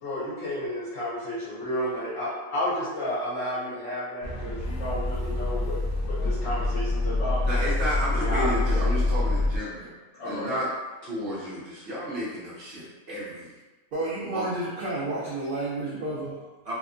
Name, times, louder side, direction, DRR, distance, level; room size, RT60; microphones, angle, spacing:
voice 1, 0.0-5.8 6.1-7.4 8.1-8.7 10.1-10.6, equal, 55° left, -11 dB, 1.0 m, -31 dB
sound 1, 4.2-9.6, left 2 dB, 75° left, 0.5 m, -26 dB
voice 2, 7.4-10.0 10.2-10.7 11.0-13.5 14.2-14.5 16.6-16.7, equal, 50° right, -8 dB, 0.9 m, -32 dB
voice 3, 13.9-16.5, right 2 dB, 90° right, -7 dB, 0.4 m, -31 dB
2.8 x 2.2 x 2.5 m, 1.2 s
omnidirectional pair, 1.5 m